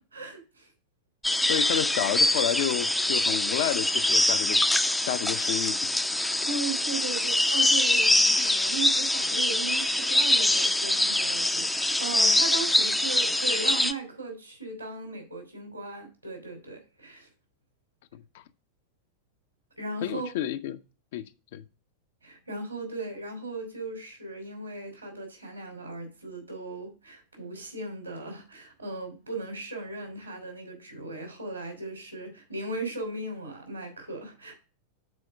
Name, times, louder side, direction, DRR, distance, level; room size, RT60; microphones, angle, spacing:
voice 1, 0.1-0.7 1.4-1.5 6.4-17.3 19.8-20.3 22.2-34.6, right 3 dB, 80° right, 2.8 m, -37 dB
sound 1, 1.2-13.9, left 1 dB, 5° left, 0.4 m, -24 dB
voice 2, 1.5-4.7 5.1-5.8 6.2-6.3 18.1-18.4 20.0-20.8 21.1-21.3 21.5-21.6, left 11 dB, 55° left, 0.5 m, -30 dB
6.3 x 4.3 x 6.1 m
figure-of-eight pair, 90°, 0 cm